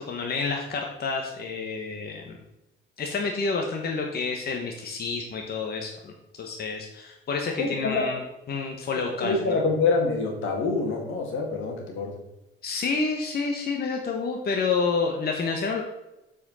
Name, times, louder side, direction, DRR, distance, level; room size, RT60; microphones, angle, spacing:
voice 1, 0.1-2.4 3.0-6.1 6.4-8.2 8.5-9.6 12.6-15.8, left 4 dB, 50° left, 2 dB, 1.3 m, -29 dB
voice 2, 7.6-8.0 9.1-12.1, left 3 dB, 80° left, 2 dB, 2.1 m, -26 dB
7.5 x 5.0 x 5.7 m, 0.96 s
cardioid pair, 90°, 20 cm